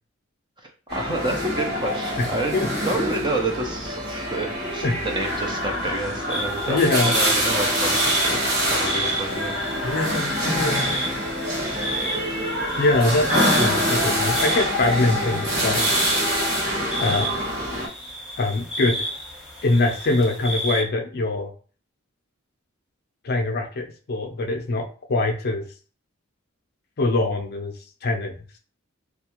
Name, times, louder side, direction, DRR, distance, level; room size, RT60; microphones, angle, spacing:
voice 1, 0.6-2.5 2.8-9.6, right 2 dB, 20° right, 2 dB, 0.5 m, -29 dB
sound 1, 0.9-17.9, equal, 55° right, 1.1 m, -25 dB
sound 2, 6.3-20.8, right 1 dB, ahead, 0.8 m, -32 dB
voice 2, 6.7-7.1 9.8-10.9 12.8-15.9 17.0-17.3 18.4-19.0 19.6-21.5 23.2-25.7 27.0-27.7 28.0-28.4, left 2 dB, 50° left, 4 dB, 0.5 m, -23 dB
2.4 x 2.3 x 2.9 m, 0.39 s
head